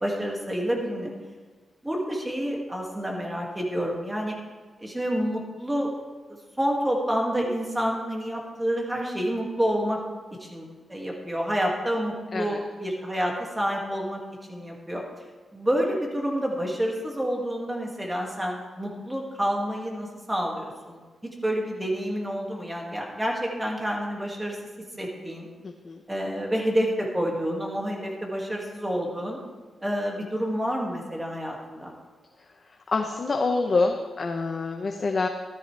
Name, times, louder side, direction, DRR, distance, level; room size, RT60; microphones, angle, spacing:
voice 1, 0.0-1.1 1.8-4.4 4.8-5.9 6.3-10.0 10.4-14.2 14.5-15.0 15.5-21.0 21.4-24.6 25.0-25.5 26.1-29.4 29.8-31.9, equal, 10° right, -1 dB, 2.1 m, -28 dB
voice 2, 25.6-26.0 32.9-35.3, left 3 dB, 40° left, 3 dB, 0.8 m, -26 dB
14.5 x 13.0 x 3.4 m, 1.4 s
wide cardioid pair, 140°, 0 cm